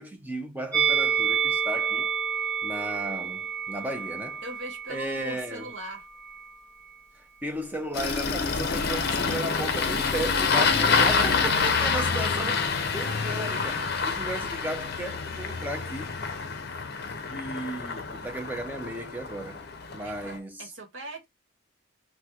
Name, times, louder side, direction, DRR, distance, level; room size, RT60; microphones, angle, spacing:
voice 1, 0.0-2.1 2.6-4.4 4.9-5.7 7.2-16.2 17.3-19.7 19.9-20.7, right 1 dB, 10° right, 0.5 m, -35 dB
Musical instrument, 0.7-6.0 6.2-6.4, right 7 dB, 10° left, 1.0 m, -29 dB
voice 2, 4.4-6.1 19.9-21.3, right 1 dB, 65° right, 1.1 m, -40 dB
Engine starting, 7.9-20.4, left 5 dB, 50° left, 0.6 m, -27 dB
3.0 x 2.2 x 3.5 m
head